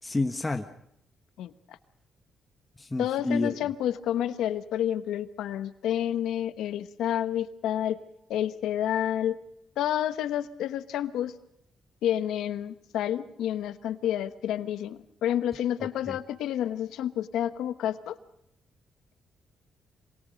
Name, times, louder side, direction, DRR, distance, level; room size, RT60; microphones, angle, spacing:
voice 1, 0.0-0.6 2.8-3.6 16.1-16.2, left 2 dB, 15° left, 5 dB, 1.4 m, -29 dB
voice 2, 1.4-1.8 3.0-8.0 8.3-9.4 9.8-11.3 12.0-18.2, left 11 dB, 85° left, 12 dB, 1.1 m, -29 dB
26.5 x 24.5 x 5.2 m, 0.76 s
cardioid pair, 85°, 0 cm